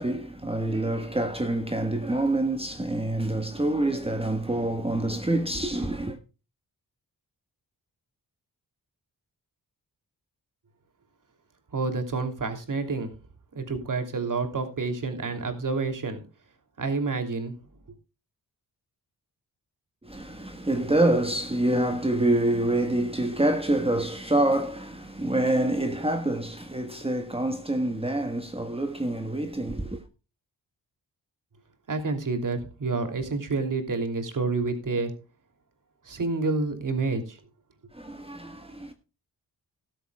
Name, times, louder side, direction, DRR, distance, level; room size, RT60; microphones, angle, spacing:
voice 1, 0.0-6.2 20.0-30.0 37.9-38.9, right 1 dB, 15° right, 1.4 m, -26 dB
voice 2, 11.7-13.1 13.5-16.2 16.8-17.5 31.9-35.1 36.0-37.4, right 3 dB, 55° right, 3.0 m, -28 dB
17.0 x 12.5 x 2.3 m
cardioid pair, 85°, 38 cm